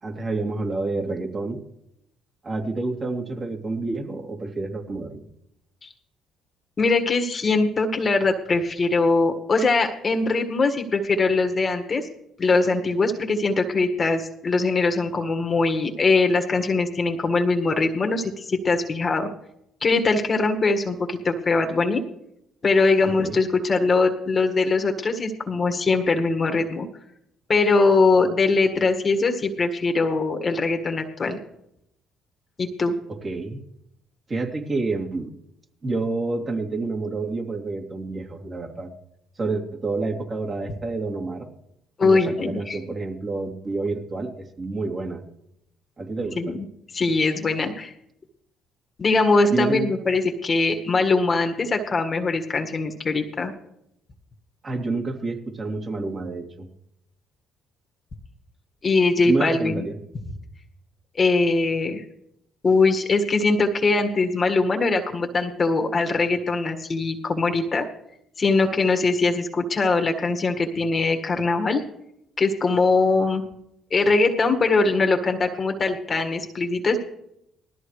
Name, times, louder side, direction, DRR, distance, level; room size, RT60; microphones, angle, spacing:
voice 1, 0.0-1.6 2.4-5.2 23.2-23.4 33.1-33.6 34.3-35.3 35.8-38.9 39.4-41.5 42.0-45.2 46.0-46.6 49.5-49.9 54.6-56.7 59.2-60.0, right 3 dB, 40° right, 2 dB, 2.8 m, -28 dB
voice 2, 6.8-12.1 12.4-19.3 19.8-22.0 22.6-26.9 27.5-31.4 32.6-32.9 42.0-42.8 46.4-46.6 46.9-47.9 49.0-53.5 58.8-59.8 61.2-62.0 62.6-67.9 68.4-71.8 72.4-73.4 73.9-77.0, left 3 dB, 40° left, 5 dB, 1.7 m, -22 dB
19.5 x 13.5 x 3.2 m, 0.80 s
hypercardioid pair, 60°, 0 cm